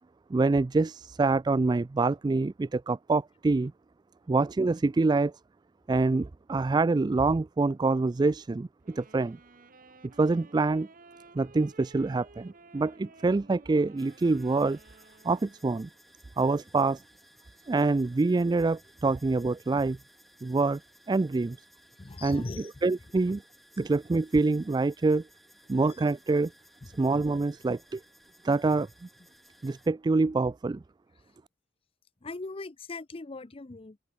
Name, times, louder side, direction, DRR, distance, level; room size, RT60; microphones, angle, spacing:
voice 1, 0.3-3.7 4.3-5.3 5.9-9.4 10.2-10.9 11.3-14.8 15.2-15.9 16.4-17.0 17.7-20.0 20.4-20.8 21.1-21.6 22.2-22.4 22.8-23.4 23.8-25.2 25.7-26.5 27.0-28.0 28.4-28.9 29.6-30.8, right 3 dB, 25° right, 0.3 m, -26 dB
Wind instrument woodwind instrument, 8.8-16.0, right 3 dB, 50° right, 1.8 m, -55 dB
sound 1, 14.0-29.9, equal, ahead, 5.9 m, -60 dB
voice 2, 22.0-22.7 25.9-26.0 26.8-26.9 32.2-34.0, left 3 dB, 30° left, 0.6 m, -40 dB
open air
head